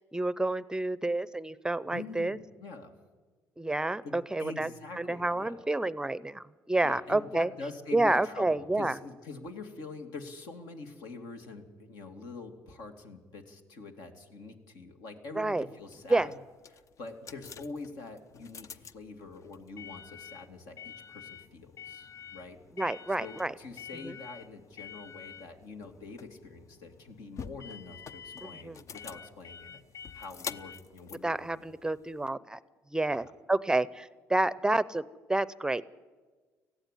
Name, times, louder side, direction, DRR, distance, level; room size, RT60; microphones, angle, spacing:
voice 1, 0.1-2.4 3.6-4.7 5.0-7.5 7.9-8.9 15.4-15.7 16.1-16.3 22.8-23.5 24.0-24.1 28.4-28.8 31.2-32.6 32.9-35.8, right 2 dB, 10° right, 18 dB, 0.6 m, -29 dB
voice 2, 1.9-2.9 4.0-5.7 6.8-16.4 16.7-22.6 23.2-29.8 30.1-31.4 31.7-31.8 33.1-33.3, left 3 dB, 75° left, 4 dB, 2.6 m, -45 dB
sound 1, 15.8-32.3, left 7 dB, 50° left, 0.7 m, -47 dB
18.0 x 15.0 x 10.0 m, 1.4 s
supercardioid pair, 70°, 7 cm